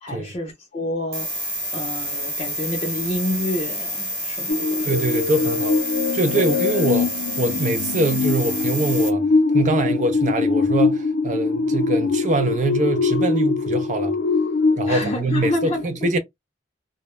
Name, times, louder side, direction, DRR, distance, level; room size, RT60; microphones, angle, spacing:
voice 1, 0.0-1.3 1.7-4.8 6.4-6.5 14.9-16.1, left 1 dB, 35° left, 0.5 m, -28 dB
sound 1, 1.1-9.1, equal, 20° right, 1.0 m, -29 dB
sound 2, 4.5-15.2, left 4 dB, 85° left, 0.4 m, -22 dB
voice 2, 4.8-5.8 6.1-7.1 7.4-9.3 9.5-14.1 14.8-16.2, right 2 dB, 45° right, 0.5 m, -23 dB
2.2 x 2.0 x 3.0 m
head